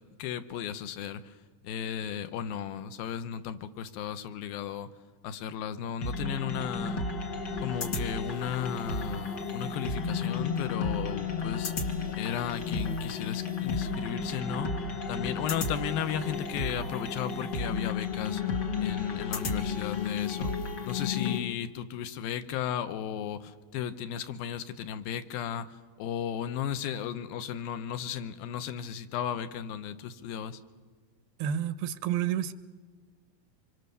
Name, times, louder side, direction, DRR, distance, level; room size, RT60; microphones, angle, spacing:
voice 1, 0.2-1.3 1.6-4.9 5.2-7.1 7.6-11.9 12.2-14.7 15.1-18.4 18.8-20.5 20.8-30.6, left 9 dB, 75° left, 11 dB, 2.7 m, -35 dB
sound 1, 6.0-21.4, left 4 dB, 60° left, 1.1 m, -33 dB
voice 2, 31.4-32.5, right 10 dB, 90° right, 13 dB, 2.9 m, -29 dB
26.0 x 25.0 x 6.9 m, 1.4 s
omnidirectional pair, 4.4 m